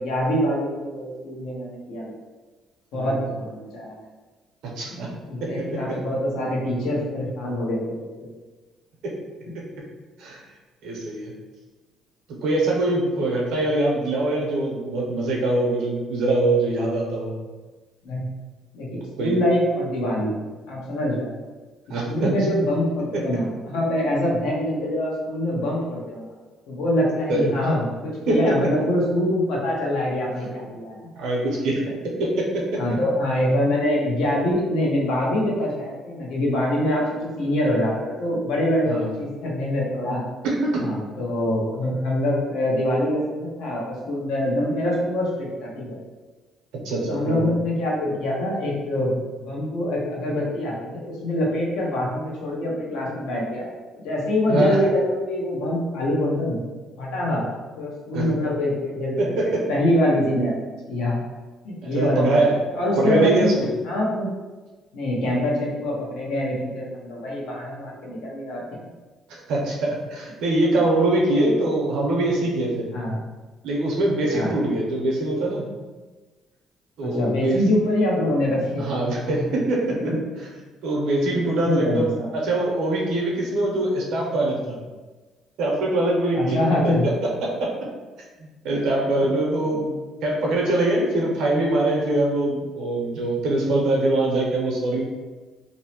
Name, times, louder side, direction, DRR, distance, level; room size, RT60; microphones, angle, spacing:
voice 1, 0.0-2.1 2.9-4.0 4.9-8.1 18.0-18.3 18.7-20.4 20.7-21.3 22.1-26.3 26.7-31.1 32.7-40.2 40.8-46.0 47.1-56.6 57.0-57.4 57.8-60.5 60.9-61.2 61.6-62.4 62.7-63.5 63.8-64.3 64.9-68.9 72.9-73.2 74.3-74.5 77.0-79.0 79.3-79.4 80.0-80.2 81.3-82.3 86.3-87.1 88.7-88.8 89.7-89.8, left 1 dB, 85° left, -4 dB, 0.7 m, -24 dB
voice 2, 4.8-5.1 5.4-6.0 9.0-9.1 10.2-10.4 10.8-11.3 12.4-17.3 18.9-19.4 21.9-22.3 23.1-23.2 27.3-27.5 28.3-28.5 31.2-31.8 32.2-32.8 38.9-39.1 40.4-40.8 46.8-47.5 54.5-54.8 58.1-58.2 59.2-59.6 61.8-62.6 63.0-63.7 69.3-72.9 73.6-75.6 77.0-77.6 78.8-80.0 80.8-84.8 85.6-86.6 87.4-87.7 88.4-89.9 90.2-95.0, right 2 dB, 80° right, -2 dB, 0.7 m, -23 dB
2.6 x 2.0 x 2.9 m, 1.3 s
cardioid pair, 120°, 0 cm